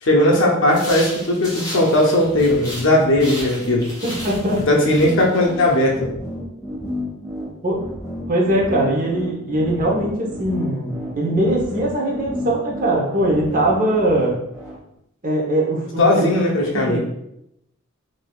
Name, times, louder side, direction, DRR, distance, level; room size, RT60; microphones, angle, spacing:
voice 1, 0.0-3.9 4.7-6.1 16.0-17.0, left 1 dB, 55° left, -1 dB, 0.6 m, -17 dB
sound 1, 0.7-2.9 3.2-5.8, equal, 15° left, 1.2 m, -34 dB
sound 2, 2.2-14.8, left 1 dB, 10° right, 1.3 m, -32 dB
voice 2, 4.0-4.6 7.6-7.8 8.3-14.3 15.2-16.3 16.6-17.0, right 1 dB, 35° right, -3 dB, 0.8 m, -21 dB
3.8 x 2.6 x 2.3 m, 0.80 s
head